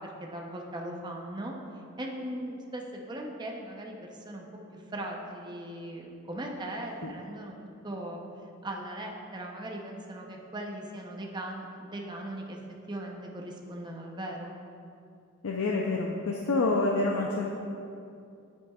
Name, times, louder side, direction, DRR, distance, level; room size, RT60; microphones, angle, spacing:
voice 1, 0.0-1.6 2.0-4.5 4.7-7.6 7.8-8.2 8.6-12.6 12.9-14.6, right 1 dB, 20° right, 0 dB, 0.7 m, -39 dB
voice 2, 15.4-17.5, left 3 dB, 85° left, 0 dB, 0.6 m, -27 dB
9.5 x 8.5 x 2.4 m, 2.6 s
head